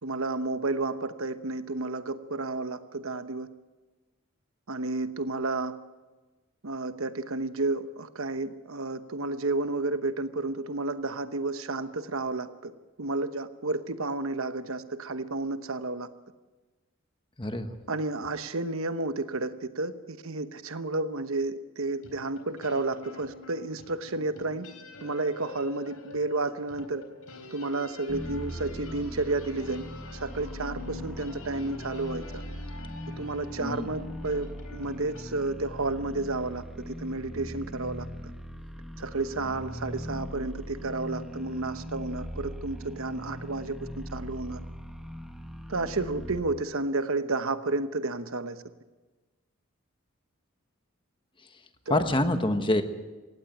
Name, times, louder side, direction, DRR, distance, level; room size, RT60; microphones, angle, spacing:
voice 1, 0.0-3.5 4.7-5.7 6.6-12.7 13.0-16.1 17.9-24.7 25.0-27.0 27.5-29.8 30.1-32.4 33.2-38.1 39.0-44.6 45.7-48.6 51.9-52.1, right 2 dB, 70° right, 11 dB, 1.0 m, -31 dB
voice 2, 17.4-17.8 33.6-33.9 51.9-52.8, left 1 dB, 20° left, 8 dB, 1.2 m, -26 dB
sound 1, 21.9-35.2, left 3 dB, 85° left, 3.9 m, -46 dB
sound 2, 28.1-46.4, equal, ahead, 1.4 m, -40 dB
18.0 x 16.0 x 9.1 m, 1.2 s
head